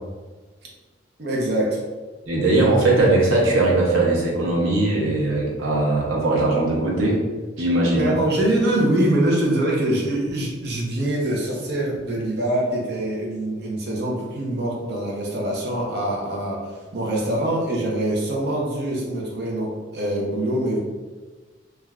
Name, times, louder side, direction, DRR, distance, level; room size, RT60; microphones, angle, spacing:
voice 1, 1.2-1.8 7.9-20.8, right 1 dB, 55° right, -2 dB, 0.6 m, -24 dB
voice 2, 2.3-7.2 7.6-8.1, right 2 dB, 90° right, -3 dB, 0.8 m, -19 dB
3.2 x 2.4 x 2.3 m, 1.3 s
head